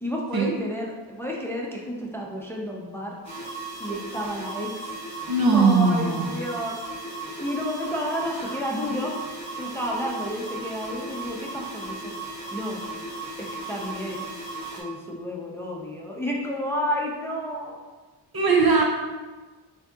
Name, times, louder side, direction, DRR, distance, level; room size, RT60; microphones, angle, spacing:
voice 1, 0.0-3.1 3.8-4.9 5.5-6.8 7.4-9.1 9.6-12.0 12.5-12.8 13.4-14.2 14.8-17.8, equal, 5° left, -3 dB, 0.6 m, -31 dB
sound 1, 3.2-14.8, right 2 dB, 35° right, 1.1 m, -36 dB
voice 2, 5.3-6.4 8.4-8.6 18.3-18.8, right 4 dB, 50° right, 0 dB, 0.6 m, -20 dB
6.3 x 2.7 x 2.4 m, 1.3 s
wide cardioid pair, 60°, 46 cm